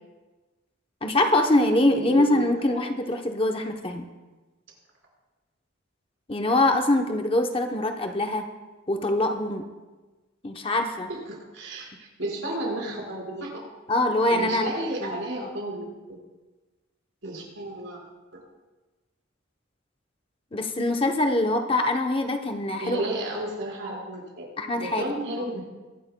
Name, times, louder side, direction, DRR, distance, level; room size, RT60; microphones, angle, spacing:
voice 1, 1.0-4.1 6.3-8.5 8.9-9.7 10.4-11.1 13.9-14.7 15.0-15.3 20.5-23.1 24.6-25.1, left 1 dB, 25° left, 5 dB, 0.7 m, -24 dB
voice 2, 1.9-2.8 11.1-11.9 12.2-13.5 14.3-15.9 17.2-18.0 18.3-18.4 22.8-24.4 24.8-25.6, right 1 dB, 65° right, -2 dB, 4.8 m, -32 dB
23.0 x 11.0 x 2.2 m, 1.2 s
head